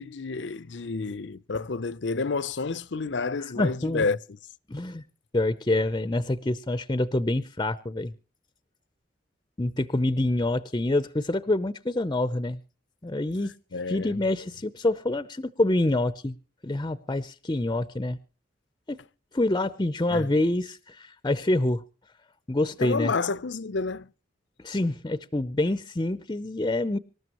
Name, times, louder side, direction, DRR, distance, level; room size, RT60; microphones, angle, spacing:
voice 1, 0.0-4.2 13.7-14.1 20.1-20.3 22.8-24.1, left 4 dB, 70° left, 0.7 m, -29 dB
voice 2, 3.6-4.1 4.7-5.0 5.3-8.1 9.6-12.6 13.0-13.5 13.9-16.4 16.6-18.2 18.9-19.0 19.3-21.8 22.5-23.1 24.6-27.0, left 2 dB, 25° left, 0.7 m, -26 dB
25.5 x 13.0 x 3.0 m
head